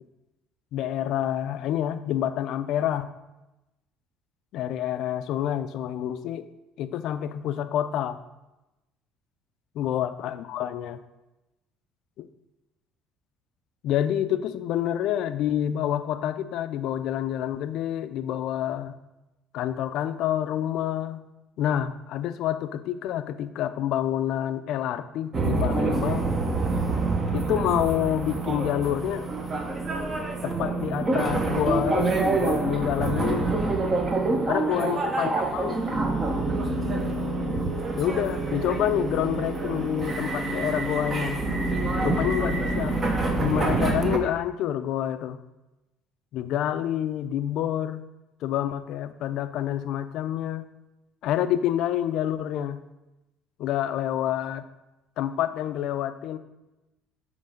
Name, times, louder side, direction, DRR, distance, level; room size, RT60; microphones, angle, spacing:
voice 1, 0.7-3.1 4.5-6.5 6.8-8.2 9.8-11.0 12.2-12.3 13.8-19.0 19.5-21.2 21.6-26.3 27.3-29.3 30.4-33.5 34.5-35.8 37.9-41.4 42.0-43.0 43.4-45.4 46.3-48.0 48.4-50.6 51.2-52.8 53.6-54.6 55.2-56.4, left 11 dB, 70° left, 11 dB, 0.4 m, -28 dB
sound 1, 25.3-44.2, right 3 dB, 30° right, 0.9 m, -26 dB
7.6 x 3.2 x 5.1 m, 1.0 s
supercardioid pair, 100°, 0 cm